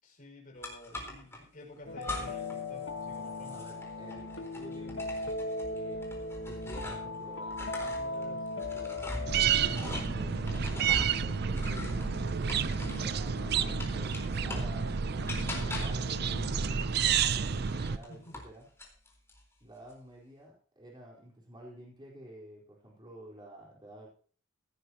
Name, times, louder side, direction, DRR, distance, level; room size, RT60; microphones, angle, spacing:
voice 1, 0.0-3.7 17.5-18.4, left 1 dB, 45° left, -1 dB, 5.6 m, -51 dB
sound 1, 0.6-1.4 2.0-2.6 2.9-7.2 7.5-13.1 13.5-14.8 15.3-16.1 17.1-18.5 18.8-19.4, left 1 dB, 15° left, 4.2 m, -42 dB
sound 2, 1.9-17.6, left 2 dB, 85° left, 1.4 m, -40 dB
voice 2, 3.5-5.2 5.7-10.5 10.8-14.9 15.2-16.4 17.2-18.7 19.6-24.1, right 1 dB, 25° right, -3 dB, 4.2 m, -51 dB
sound 3, 9.3-18.0, right 6 dB, 55° right, 0.5 m, -30 dB
16.5 x 13.0 x 2.9 m, 0.41 s
head